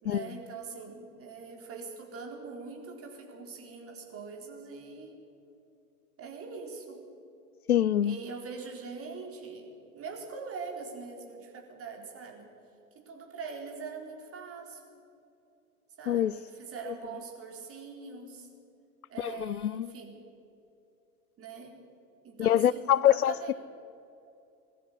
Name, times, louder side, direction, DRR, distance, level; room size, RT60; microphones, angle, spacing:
voice 1, 0.0-5.1 6.2-7.0 8.0-12.5 12.9-15.0 16.0-18.5 19.1-20.1 21.4-21.8 22.2-23.5, right 5 dB, 30° right, 4.1 m, -43 dB
voice 2, 7.7-8.2 16.1-16.4 19.2-19.9 22.4-23.5, left 11 dB, 80° left, 0.5 m, -25 dB
21.5 x 13.5 x 9.9 m
figure-of-eight pair, 80°, 44 cm